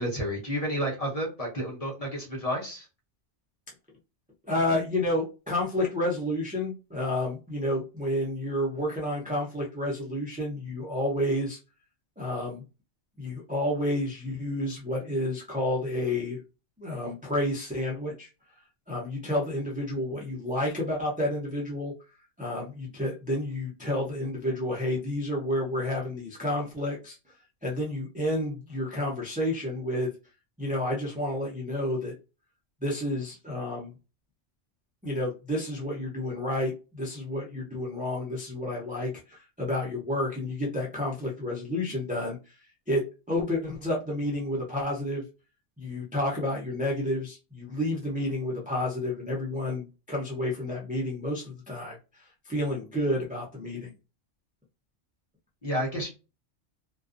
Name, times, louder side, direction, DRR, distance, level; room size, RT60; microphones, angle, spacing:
voice 1, 0.0-2.9 55.6-56.1, equal, 35° left, -2 dB, 0.9 m, -30 dB
voice 2, 4.5-11.6 12.2-12.6 13.2-16.4 16.8-18.3 18.9-21.9 22.4-27.2 27.6-30.1 30.6-32.1 32.8-33.9 35.0-42.5 42.9-45.2 45.8-53.9, left 1 dB, 15° right, -3 dB, 0.3 m, -30 dB
2.4 x 2.2 x 2.5 m, 0.30 s
omnidirectional pair, 1.2 m